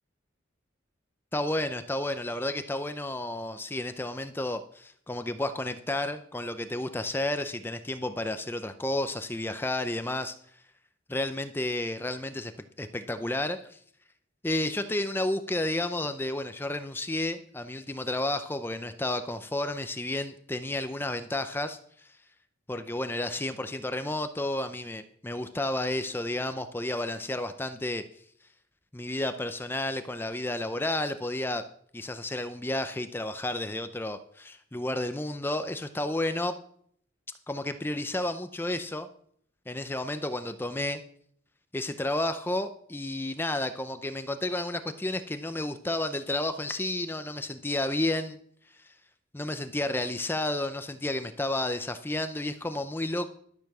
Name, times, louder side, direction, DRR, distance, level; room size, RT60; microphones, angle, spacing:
voice 1, 1.3-10.4 11.1-12.5 12.8-13.8 14.4-22.1 22.7-28.0 28.9-31.6 31.9-36.5 37.5-39.1 39.7-41.0 41.7-48.4 48.8-48.9 49.3-53.3, left 1 dB, 10° left, 9 dB, 0.5 m, -31 dB
12.0 x 6.8 x 6.1 m, 0.63 s
head